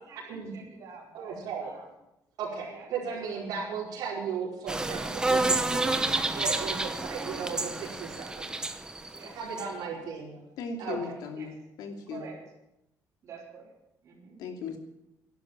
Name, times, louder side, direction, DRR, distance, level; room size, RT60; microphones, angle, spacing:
voice 1, 0.0-1.9 2.6-3.8 6.6-7.5 9.1-10.4 11.4-11.6 12.1-12.5 13.2-13.7 14.0-14.4, right 5 dB, 50° right, -4 dB, 4.7 m, -49 dB
voice 2, 1.1-1.7 2.4-8.5 9.3-10.3 10.8-11.2, right 6 dB, 80° right, -8 dB, 5.0 m, -36 dB
sound 1, 4.7-9.6, right 2 dB, 10° right, 1.0 m, -29 dB
voice 3, 10.6-12.3 14.4-14.8, left 5 dB, 85° left, 4 dB, 2.8 m, -37 dB
12.0 x 11.5 x 8.9 m, 0.88 s
cardioid pair, 150°, 7 cm